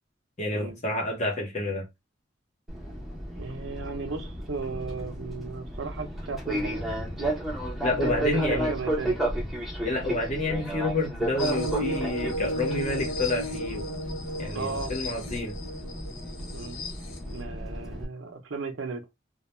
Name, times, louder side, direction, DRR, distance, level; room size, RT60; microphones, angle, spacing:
voice 1, 0.4-1.8 7.8-8.7 9.8-13.8 14.4-15.5, left 2 dB, 35° left, 0.8 m, -29 dB
Fixed-wing aircraft airplane, 2.7-18.0, right 1 dB, ahead, 0.6 m, -33 dB
voice 2, 3.4-6.9 7.2-7.3 7.9-9.2 14.5-14.9 16.5-16.8 17.3-19.1, right 4 dB, 80° right, 0.5 m, -35 dB
sound 1, 11.4-17.4, equal, 90° left, 0.6 m, -34 dB
2.3 x 2.1 x 2.9 m
head